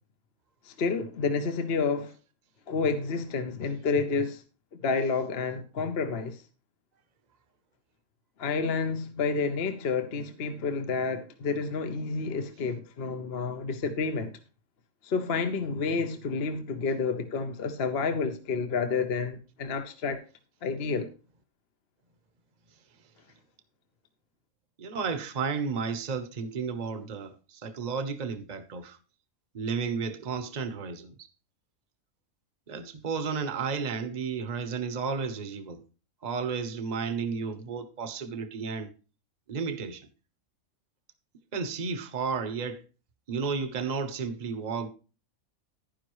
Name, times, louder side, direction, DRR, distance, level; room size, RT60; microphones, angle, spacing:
voice 1, 0.6-2.1 2.7-4.4 4.8-6.4 8.4-14.3 15.0-20.2 20.6-21.1, left 4 dB, 50° left, 1.1 m, -29 dB
voice 2, 24.8-29.0 29.5-31.2 32.7-35.8 36.2-38.9 39.5-40.1 41.5-42.8 43.3-44.9, right 5 dB, 35° right, 1.0 m, -32 dB
11.0 x 10.0 x 3.1 m
omnidirectional pair, 1.4 m